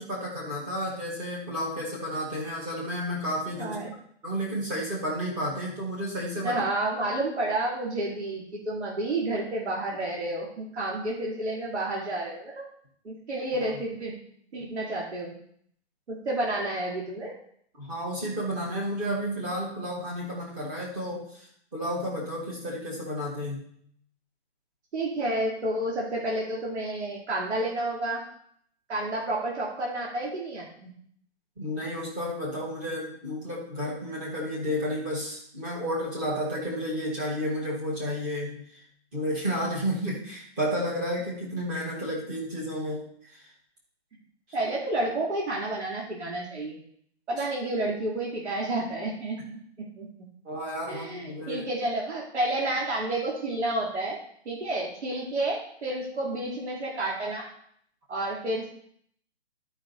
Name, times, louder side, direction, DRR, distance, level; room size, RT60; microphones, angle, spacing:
voice 1, 0.0-3.8 4.2-6.6 13.5-13.6 17.8-21.5 21.7-23.6 31.6-38.8 39.1-43.5 50.4-51.6, equal, 10° right, -4 dB, 0.9 m, -32 dB
voice 2, 3.6-3.9 6.4-12.6 13.0-14.1 14.5-15.3 16.1-17.3 24.9-28.2 28.9-30.9 44.5-46.8 47.3-49.6 50.0-50.1 50.9-54.2 54.5-57.5 58.1-58.7, right 1 dB, 70° right, -4 dB, 2.6 m, -30 dB
12.0 x 5.0 x 3.9 m, 0.65 s
hypercardioid pair, 175°, 35 cm